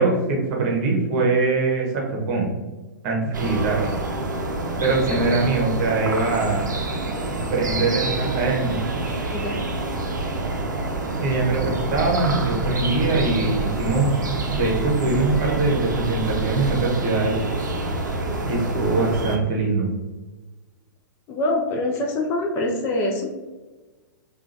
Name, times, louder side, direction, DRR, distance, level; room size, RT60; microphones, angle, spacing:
voice 1, 0.0-2.5 3.0-3.9 4.8-6.6 7.5-8.8 11.2-14.2 14.5-17.4 18.4-19.9, right 3 dB, 40° right, -1 dB, 1.0 m, -22 dB
sound 1, 3.3-19.4, right 2 dB, 70° right, 0.6 m, -27 dB
voice 2, 9.3-9.6 21.3-23.3, left 1 dB, 25° left, 1 dB, 0.5 m, -24 dB
sound 2, 11.6-16.8, right 2 dB, 10° right, 0.8 m, -32 dB
4.8 x 2.4 x 2.6 m, 1.2 s
figure-of-eight pair, 105°, 10 cm